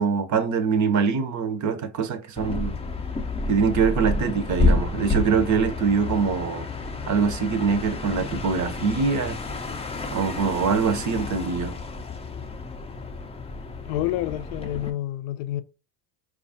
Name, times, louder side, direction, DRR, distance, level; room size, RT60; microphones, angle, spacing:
voice 1, 0.0-2.7 3.5-6.7 7.1-9.4 10.1-11.7, right 5 dB, 35° right, 0.7 m, -23 dB
sound 1, 2.4-14.9, left 2 dB, 15° left, 0.5 m, -29 dB
voice 2, 13.9-15.6, left 13 dB, 60° left, 0.5 m, -28 dB
4.5 x 2.4 x 2.7 m
hypercardioid pair, 75°, 50 cm